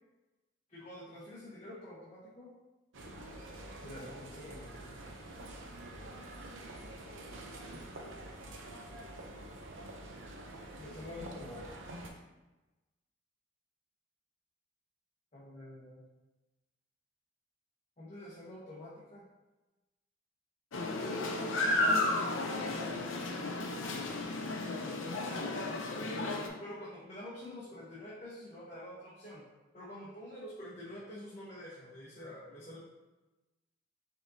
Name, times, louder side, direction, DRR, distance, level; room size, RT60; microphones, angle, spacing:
voice 1, 0.7-2.5 3.8-4.7 7.7-7.8 10.8-11.8 15.3-16.0 18.0-19.3 26.3-29.4 29.7-32.8, left 1 dB, 35° left, -9 dB, 0.9 m, -48 dB
sound 1, 2.9-12.1, right 1 dB, 75° right, 0.6 m, -47 dB
sound 2, 20.7-26.5, left 2 dB, 85° left, 0.6 m, -33 dB
4.9 x 3.8 x 2.7 m, 1.1 s
head